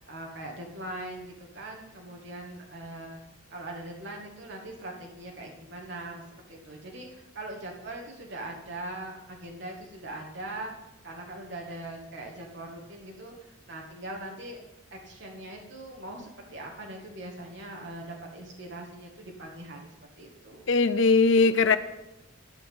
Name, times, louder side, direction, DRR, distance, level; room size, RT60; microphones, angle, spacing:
voice 1, 0.0-3.2 3.5-10.7 11.0-14.6 14.9-20.8, right 1 dB, 55° right, 0 dB, 2.1 m, -41 dB
voice 2, 20.7-21.8, left 4 dB, 60° left, 12 dB, 0.7 m, -20 dB
13.0 x 6.0 x 8.6 m, 0.94 s
head